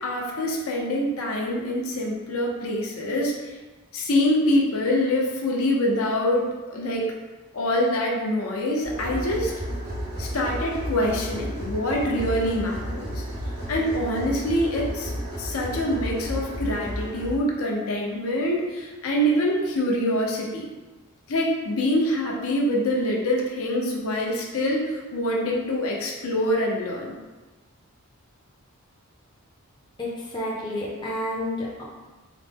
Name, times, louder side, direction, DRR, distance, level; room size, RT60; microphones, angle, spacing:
voice 1, 0.0-3.5 3.9-7.1 7.5-9.6 10.2-13.2 13.7-15.1 15.4-20.7 21.3-27.2, left 1 dB, 70° left, -1 dB, 0.6 m, -25 dB
sound 1, 8.8-17.4, equal, 85° right, 1.2 m, -32 dB
voice 2, 30.0-31.8, left 1 dB, 20° left, -5 dB, 0.5 m, -30 dB
3.9 x 2.0 x 3.4 m, 1.2 s
head